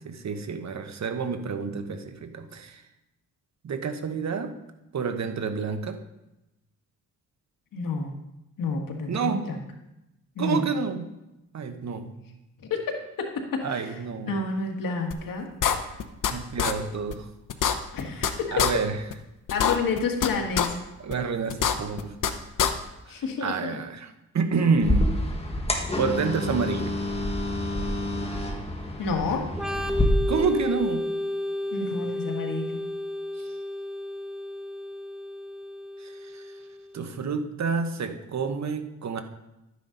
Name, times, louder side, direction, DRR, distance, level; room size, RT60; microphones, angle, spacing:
voice 1, 0.0-2.8 3.6-4.6 4.9-6.0 9.1-9.5 10.4-11.0 11.5-12.2 13.6-14.4 16.3-17.3 18.5-19.0 21.0-22.1 23.1-25.1 26.0-27.0 30.3-31.2 33.4-33.5 36.0-36.6 36.9-39.2, right 5 dB, 55° right, 7 dB, 1.1 m, -29 dB
voice 2, 7.7-8.1 8.6-9.6 10.4-10.7 12.7-13.9 14.2-15.5 17.9-18.6 19.5-20.8 23.1-23.8 29.0-29.5 31.7-32.8, left 4 dB, 90° left, 2 dB, 1.9 m, -29 dB
sound 1, 15.1-15.2 15.6-16.3 16.6-16.7 17.1-17.2 17.5-18.3 18.6-18.7 19.1-19.2 19.5-20.3 20.6-20.7 21.1-21.2 21.5-22.3 22.6-22.7, left 9 dB, 70° left, 0.9 m, -23 dB
sound 2, 24.8-30.0, left 1 dB, 20° left, 1.7 m, -28 dB
Organ, 29.5-37.0, left 1 dB, ahead, 0.8 m, -32 dB
12.0 x 9.6 x 3.9 m, 0.93 s
cardioid pair, 100°, 32 cm